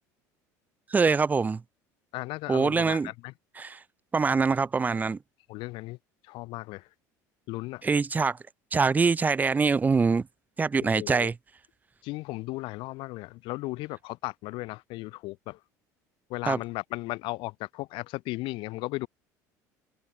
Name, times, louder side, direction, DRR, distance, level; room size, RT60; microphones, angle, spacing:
voice 1, 0.9-1.6 2.5-3.1 3.6-3.8 4.1-5.2 7.8-8.4 8.7-10.3 10.6-11.3 16.5-16.6, right 4 dB, 20° right, 0.4 m, -24 dB
voice 2, 2.1-3.3 5.5-6.0 6.2-6.9 7.5-7.8 10.8-11.3 12.0-15.6 16.3-19.1, left 21 dB, 65° left, 2.2 m, -36 dB
hypercardioid pair, 80°, 9 cm